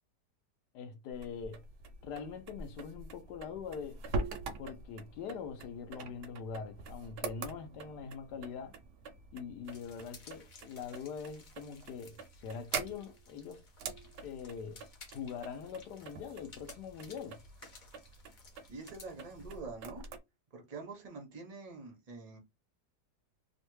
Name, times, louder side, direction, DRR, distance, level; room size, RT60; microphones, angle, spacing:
voice 1, 0.7-1.6 2.0-4.0 4.6-8.7 9.3-13.6 14.2-17.4, left 6 dB, 75° left, 1.2 m, -43 dB
sound 1, 1.1-20.2, right 4 dB, 80° right, 1.2 m, -45 dB
sound 2, 9.6-19.6, left 4 dB, 55° left, 0.5 m, -58 dB
voice 2, 18.7-20.0 20.5-22.4, right 3 dB, 45° right, 0.5 m, -46 dB
3.1 x 2.1 x 3.0 m
omnidirectional pair, 1.8 m